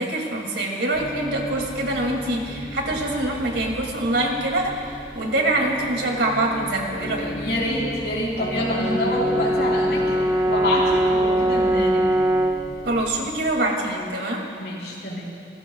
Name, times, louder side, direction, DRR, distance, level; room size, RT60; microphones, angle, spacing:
voice 1, 0.0-7.4 12.8-14.4, right 1 dB, 85° right, 0 dB, 2.6 m, -24 dB
sound 1, 0.9-13.5, equal, 20° left, 1.4 m, -36 dB
voice 2, 7.3-10.2 10.5-12.0 14.6-15.3, left 1 dB, 70° left, -5 dB, 4.0 m, -26 dB
Brass instrument, 8.4-12.7, right 1 dB, 20° right, 1.0 m, -22 dB
28.0 x 16.5 x 2.4 m, 2.3 s
head